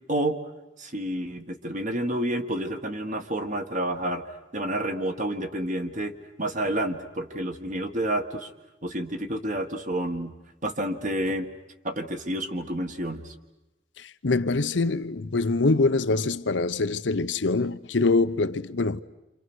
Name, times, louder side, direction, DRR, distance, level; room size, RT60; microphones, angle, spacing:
voice 1, 0.8-4.2 4.5-6.1 6.4-8.5 8.8-10.3 10.6-11.5 11.8-13.3, right 1 dB, 45° right, 1.7 m, -29 dB
voice 2, 14.0-19.0, left 3 dB, 85° left, 0.8 m, -24 dB
29.0 x 27.0 x 6.3 m
head